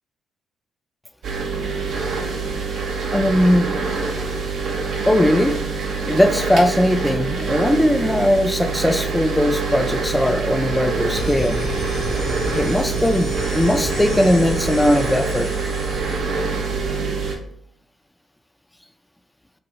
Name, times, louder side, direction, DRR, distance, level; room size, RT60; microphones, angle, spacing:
sound 1, 1.2-17.3, right 4 dB, 65° right, 0.6 m, -25 dB
voice 1, 3.1-3.7 5.1-5.6 6.1-11.6 12.5-15.5, left 1 dB, 10° left, 8 dB, 0.4 m, -19 dB
sound 2, 11.1-16.2, left 1 dB, 55° left, 0.6 m, -31 dB
3.0 x 2.6 x 2.6 m, 0.68 s
hypercardioid pair, 45°, 0 cm